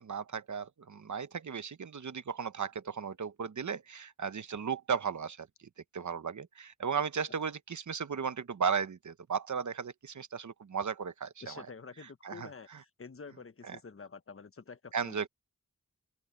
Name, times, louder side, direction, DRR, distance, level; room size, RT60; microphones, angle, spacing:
voice 1, 0.0-5.5 5.9-11.7 12.2-12.5 13.6-13.8 14.9-15.3, right 6 dB, 65° right, 0.9 m, -35 dB
voice 2, 11.4-15.3, left 5 dB, 45° left, 1.1 m, -48 dB
open air
wide cardioid pair, 90°, 31 cm